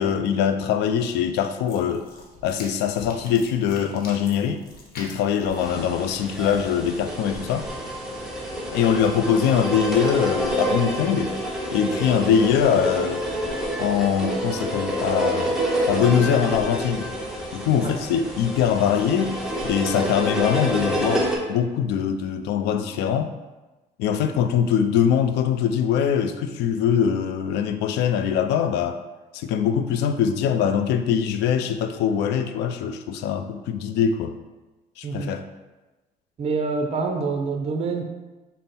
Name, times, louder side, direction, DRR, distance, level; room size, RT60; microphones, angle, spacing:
voice 1, 0.0-2.1 2.4-4.6 5.0-7.7 8.7-11.3 11.7-13.2 13.8-15.6 15.9-17.1 17.5-19.4 19.6-23.3 24.0-29.0 29.3-34.3 35.0-35.4, left 8 dB, 85° left, 9 dB, 0.4 m, -22 dB
sound 1, 1.7-7.1, left 2 dB, 60° left, 1.0 m, -45 dB
sound 2, 5.5-21.4, equal, 5° right, 0.8 m, -28 dB
voice 2, 35.0-35.3 36.4-38.0, right 4 dB, 35° right, 4 dB, 0.5 m, -26 dB
5.4 x 2.1 x 4.1 m, 1.1 s
cardioid pair, 110°, 17 cm